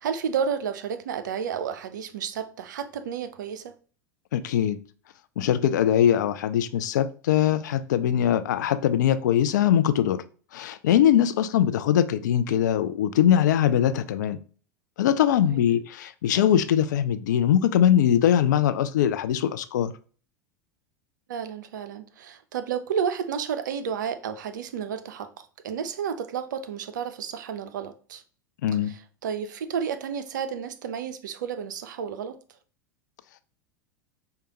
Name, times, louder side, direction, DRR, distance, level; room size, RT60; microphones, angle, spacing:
voice 1, 0.0-3.7 15.4-15.7 21.3-28.2 28.9-32.4, right 7 dB, 70° right, 0.4 m, -31 dB
voice 2, 4.3-4.8 5.4-10.2 10.5-14.4 15.0-19.9 28.6-28.9, left 10 dB, 65° left, 0.4 m, -22 dB
4.7 x 2.2 x 2.8 m
figure-of-eight pair, 85°, 10 cm